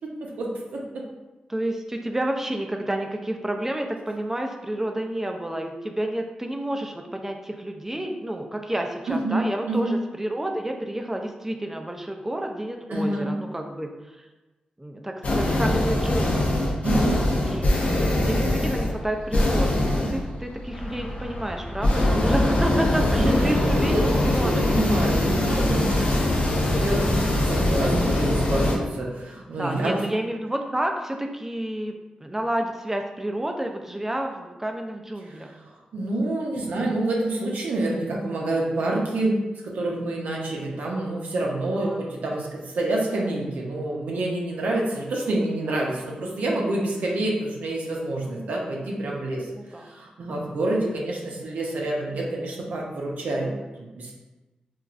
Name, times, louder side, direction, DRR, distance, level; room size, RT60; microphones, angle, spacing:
voice 1, 0.2-0.8 9.1-9.4 9.6-10.0 12.9-13.3 16.8-17.2 23.2-30.0 35.3-39.4 39.6-54.1, right 2 dB, 80° right, -2 dB, 0.6 m, -27 dB
voice 2, 1.5-14.3 14.8-16.5 17.4-24.0 24.2-24.7 29.6-35.5 41.7-42.1 46.6-46.7 49.6-49.9, right 1 dB, 15° right, 3 dB, 0.4 m, -30 dB
sound 1, 15.2-28.8, left 1 dB, 55° left, 0.6 m, -23 dB
3.0 x 2.4 x 2.4 m, 1.1 s
cardioid pair, 65°, 3 cm